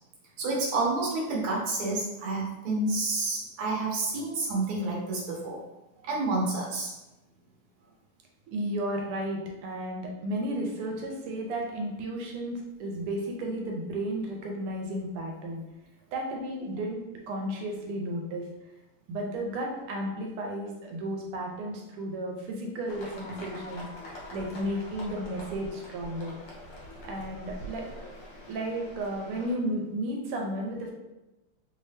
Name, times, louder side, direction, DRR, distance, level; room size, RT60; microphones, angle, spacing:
voice 1, 0.4-5.6 6.0-6.9, right 2 dB, 55° right, -3 dB, 1.3 m, -29 dB
voice 2, 8.5-15.6 16.1-17.0 17.3-18.4 19.1-23.9 24.3-26.3 27.0-27.9 28.5-30.9, right 1 dB, 85° right, 1 dB, 1.6 m, -33 dB
sound 1, 22.9-29.5, left 1 dB, 65° left, 1.7 m, -44 dB
3.6 x 2.7 x 3.3 m, 1.0 s
omnidirectional pair, 2.4 m